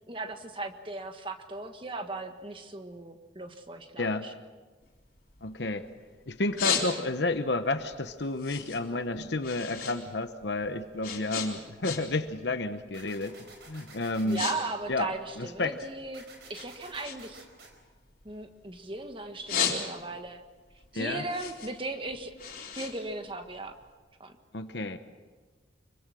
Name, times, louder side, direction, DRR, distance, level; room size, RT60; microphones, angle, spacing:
voice 1, 0.1-4.3 14.2-16.2 16.5-17.4 18.2-20.4 20.9-22.3 22.7-23.7 24.2-24.4, right 2 dB, 25° right, 6 dB, 1.5 m, -37 dB
voice 2, 4.0-4.3 5.4-5.9 6.3-13.4 13.7-14.4 14.9-15.1 15.4-15.8 20.9-21.2 24.5-25.0, left 2 dB, 65° left, 8 dB, 1.0 m, -31 dB
sound 1, 4.8-5.9 6.3-7.4 7.8-10.0 10.3-12.3 12.6-12.9 13.5-13.7 14.0-14.6 14.8-16.1 16.5-18.8 19.2-20.3 20.7-23.8, left 7 dB, 45° left, 4.2 m, -34 dB
sound 2, 12.9-14.5 16.1-17.7, right 3 dB, 60° right, 4.6 m, -51 dB
25.0 x 23.5 x 6.3 m, 1.3 s
head